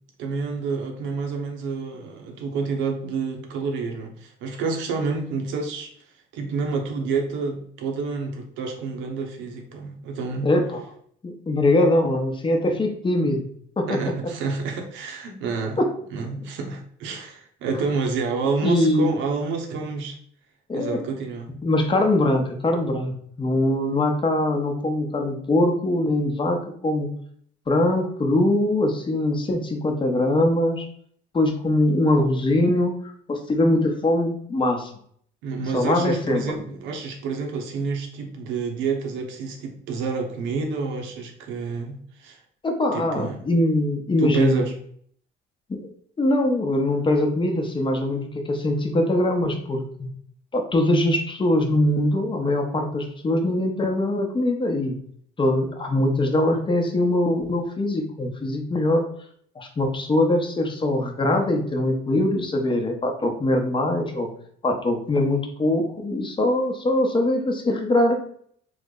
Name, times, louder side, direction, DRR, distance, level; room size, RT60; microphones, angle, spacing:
voice 1, 0.2-5.9 6.3-10.5 12.7-12.8 13.9-15.8 16.1-20.2 20.7-21.5 35.4-42.4 42.9-43.4 44.2-44.7, right 4 dB, 80° right, 2 dB, 0.8 m, -28 dB
voice 2, 10.4-10.8 11.2-13.5 13.8-14.0 15.8-15.9 18.6-19.2 20.7-21.0 21.6-27.1 27.7-30.9 31.3-33.0 33.3-34.9 35.7-36.4 42.6-44.7 45.7-45.8 46.2-50.1 50.5-55.0 55.4-59.0 59.6-64.3 64.6-68.1, left 1 dB, 25° left, 3 dB, 0.7 m, -22 dB
3.2 x 2.0 x 3.6 m, 0.62 s
supercardioid pair, 80°, 19 cm